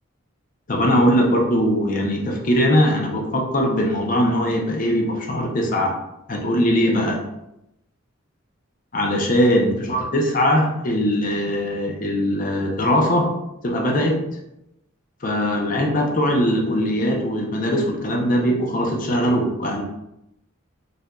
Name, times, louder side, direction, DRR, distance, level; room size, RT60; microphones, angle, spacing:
voice 1, 0.7-6.0 6.3-7.2 8.9-13.3 13.6-14.2 15.2-19.8, equal, 40° left, 1 dB, 0.6 m, -20 dB
4.5 x 2.5 x 2.3 m, 0.87 s
head